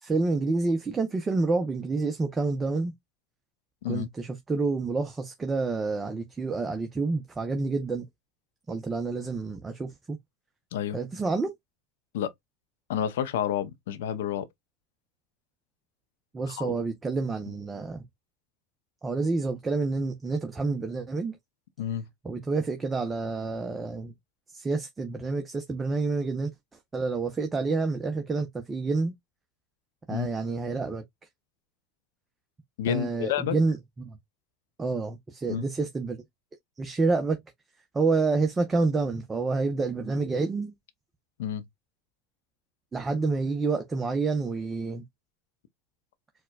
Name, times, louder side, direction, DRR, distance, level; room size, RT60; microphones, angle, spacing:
voice 1, 0.0-2.9 3.9-8.0 8.7-10.2 10.9-11.5 16.3-18.0 19.0-21.4 22.2-24.1 24.5-26.5 26.9-29.1 30.1-31.0 32.9-34.2 34.8-36.2 36.8-37.4 37.9-40.7 42.9-45.0, right 3 dB, 20° right, 0.6 m, -28 dB
voice 2, 12.9-14.5 16.5-16.8 21.8-22.0 30.1-30.3 32.8-33.6 35.5-35.7 41.4-41.6, left 10 dB, 80° left, 0.5 m, -30 dB
4.3 x 2.2 x 2.2 m
supercardioid pair, 100°, 0 cm